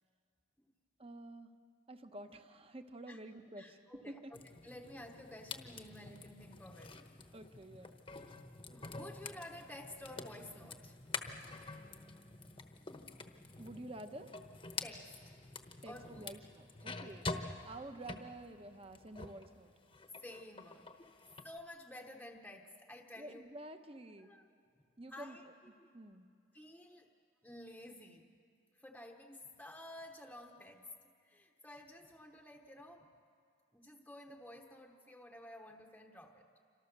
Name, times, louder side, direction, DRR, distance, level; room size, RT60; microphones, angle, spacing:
voice 1, 1.0-1.6 1.9-4.4 7.3-8.0 13.6-14.4 15.8-17.3 17.6-19.7 23.2-24.3 25.0-25.5 25.9-26.3, right 1 dB, 30° right, 8 dB, 1.1 m, -50 dB
voice 2, 3.6-4.2 4.6-7.0 8.7-11.0 14.8-16.3 20.2-20.9 21.4-23.4 24.2-24.5 25.1-25.9 26.5-27.1 27.4-28.3 28.7-33.2 33.7-36.6, left 1 dB, 5° left, 1 dB, 1.0 m, -52 dB
sound 1, 4.3-19.5 19.8-21.5, left 3 dB, 25° left, 1.1 m, -47 dB
28.0 x 26.0 x 6.8 m, 2.3 s
head